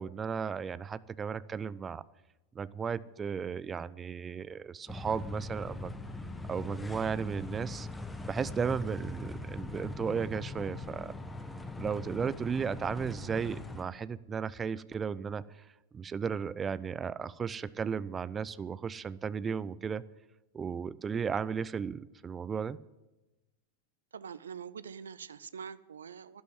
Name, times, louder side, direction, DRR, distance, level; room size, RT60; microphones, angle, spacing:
voice 1, 0.0-2.0 2.5-5.9 6.5-7.9 8.3-11.1 11.8-15.7 15.9-20.0 20.5-22.8, right 6 dB, 20° right, 18 dB, 0.5 m, -35 dB
sound 1, 4.9-13.8, left 2 dB, 10° left, 1.1 m, -41 dB
voice 2, 24.1-26.4, right 7 dB, 70° right, 16 dB, 0.6 m, -44 dB
12.0 x 11.0 x 7.8 m, 1.0 s
figure-of-eight pair, 90°, 0 cm